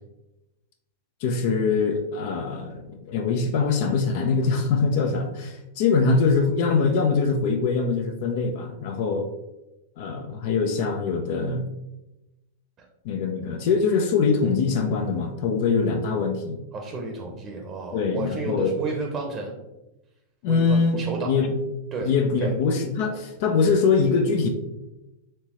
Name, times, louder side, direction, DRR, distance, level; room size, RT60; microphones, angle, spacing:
voice 1, 1.2-9.3 10.0-11.7 13.0-16.6 17.9-18.7 20.4-21.6 22.0-24.5, left 4 dB, 55° left, 4 dB, 0.5 m, -23 dB
voice 2, 16.7-19.6 20.5-21.4 21.9-22.1 22.4-22.5, right 3 dB, 30° right, 2 dB, 0.7 m, -32 dB
4.4 x 3.2 x 2.9 m, 0.98 s
hypercardioid pair, 100°, 0 cm